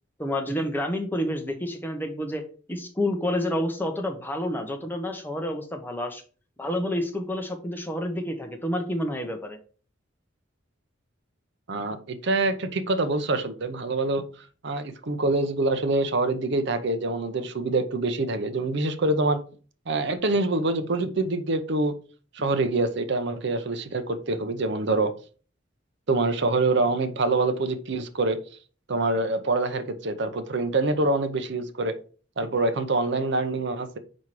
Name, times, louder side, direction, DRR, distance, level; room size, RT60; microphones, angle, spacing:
voice 1, 0.2-2.4 2.7-6.2 6.6-9.6, left 1 dB, 10° left, 4 dB, 0.9 m, -29 dB
voice 2, 11.7-14.2 14.6-19.4 19.9-21.9 22.3-25.1 26.1-28.4 28.9-31.9 32.4-34.0, right 2 dB, 65° right, 10 dB, 0.7 m, -25 dB
4.7 x 4.3 x 4.6 m, 0.39 s
head